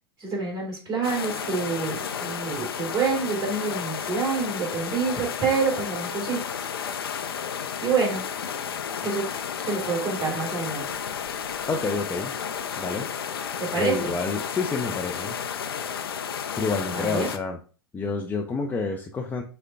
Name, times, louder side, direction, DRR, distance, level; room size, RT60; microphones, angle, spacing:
voice 1, 0.2-6.7 7.8-8.2 9.0-9.3 9.6-10.8 13.6-14.1 16.9-17.3, right 5 dB, 25° right, -2 dB, 2.6 m, -27 dB
sound 1, 1.0-17.4, left 7 dB, 70° left, 0.5 m, -32 dB
voice 2, 11.7-12.3 12.8-13.1 13.8-15.3 16.6-17.6 17.9-19.4, left 4 dB, 15° left, 1 dB, 0.5 m, -28 dB
6.5 x 2.2 x 3.6 m, 0.37 s
figure-of-eight pair, 100°, 13 cm